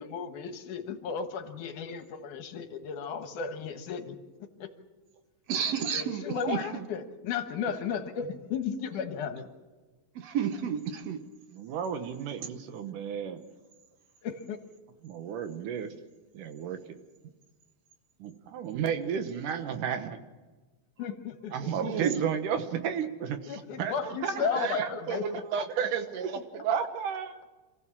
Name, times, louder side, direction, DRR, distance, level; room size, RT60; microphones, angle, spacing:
voice 1, 0.0-4.7 5.9-9.5 14.2-14.6 21.0-21.9 23.5-25.4, left 6 dB, 80° left, 7 dB, 2.9 m, -34 dB
voice 2, 5.5-6.8 10.2-11.2 18.7-18.8 21.8-22.3 24.5-24.7, right 7 dB, 65° right, 8 dB, 2.0 m, -31 dB
voice 3, 11.5-13.4 15.0-15.9 16.3-16.8 18.2-20.2 21.5-27.5, right 7 dB, 85° right, 9 dB, 2.8 m, -33 dB
27.0 x 15.5 x 7.4 m, 1.3 s
omnidirectional pair, 3.6 m